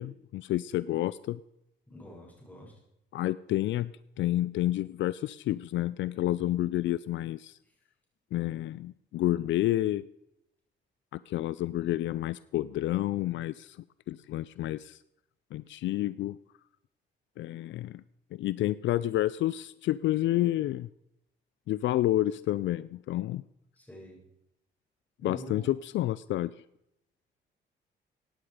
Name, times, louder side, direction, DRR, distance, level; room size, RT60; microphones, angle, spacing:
voice 1, 0.0-1.4 3.1-7.6 8.3-10.1 11.1-13.8 14.1-15.0 15.5-16.4 17.4-18.0 18.3-20.9 21.7-23.4 25.2-26.5, left 14 dB, 70° left, 18 dB, 0.4 m, -29 dB
voice 2, 1.9-2.7 23.8-24.2 25.2-25.7, equal, 10° left, -2 dB, 6.9 m, -45 dB
16.5 x 9.6 x 4.9 m, 0.81 s
cardioid pair, 90°, 20 cm